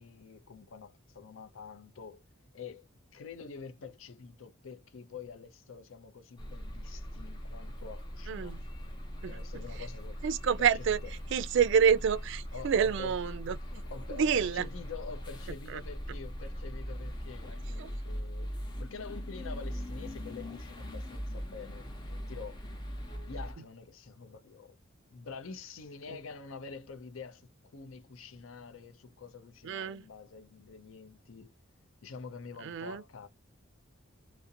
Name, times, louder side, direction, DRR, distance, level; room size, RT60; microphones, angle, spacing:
voice 1, 0.0-2.2 2.5-2.9 3.1-8.6 9.2-10.2 12.5-13.1 13.7-22.6 23.3-24.8 25.1-31.5 32.0-33.3, left 5 dB, 75° left, 0.5 m, -47 dB
sound 1, 6.4-23.5, equal, 20° left, 0.7 m, -40 dB
voice 2, 8.3-8.6 9.2-9.4 10.2-11.0 11.3-13.6 14.1-14.7 15.7-15.8 17.8-17.9 29.6-30.0 32.6-33.0, right 7 dB, 65° right, 0.3 m, -28 dB
2.4 x 2.1 x 2.6 m
head